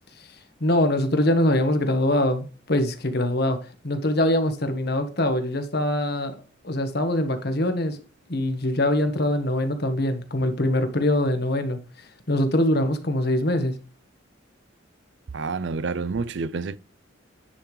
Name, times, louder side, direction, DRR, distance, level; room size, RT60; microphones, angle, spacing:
voice 1, 0.6-6.4 6.6-8.0 8.3-13.8, left 1 dB, 55° left, 1.4 m, -23 dB
voice 2, 15.3-16.8, right 4 dB, 65° right, 0.5 m, -28 dB
10.0 x 5.8 x 3.2 m
head